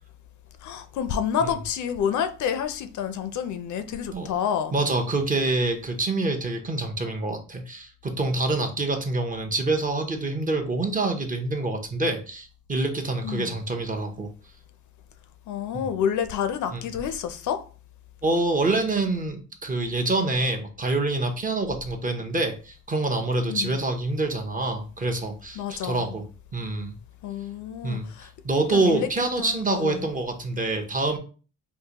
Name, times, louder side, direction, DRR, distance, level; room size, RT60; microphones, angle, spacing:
voice 1, 0.6-4.7 13.2-13.5 15.5-17.6 23.5-23.8 25.6-26.1 27.2-28.3 28.7-29.1 29.4-30.1, left 8 dB, 55° left, 0.5 m, -29 dB
voice 2, 4.7-14.3 15.7-15.9 16.7-16.8 18.2-26.2 26.5-27.0 27.8-31.2, right 2 dB, 25° right, 0.6 m, -26 dB
3.6 x 2.5 x 2.8 m
cardioid pair, 115°, 35 cm